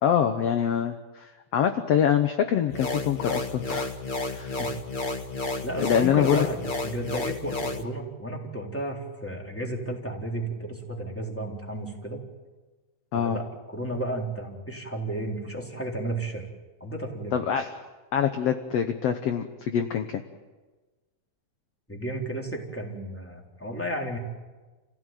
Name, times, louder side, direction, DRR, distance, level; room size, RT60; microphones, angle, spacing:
voice 1, 0.0-3.9 4.3-4.6 5.8-6.5 13.1-13.4 17.3-17.7 18.1-20.2, left 9 dB, 60° left, 7 dB, 1.9 m, -25 dB
sound 1, 2.7-7.8, left 2 dB, 40° left, 0.6 m, -32 dB
voice 2, 5.6-12.2 13.1-16.4 16.8-17.4 21.9-24.2, right 1 dB, 5° left, 0 dB, 3.7 m, -33 dB
30.0 x 16.5 x 9.2 m, 1.3 s
omnidirectional pair, 3.5 m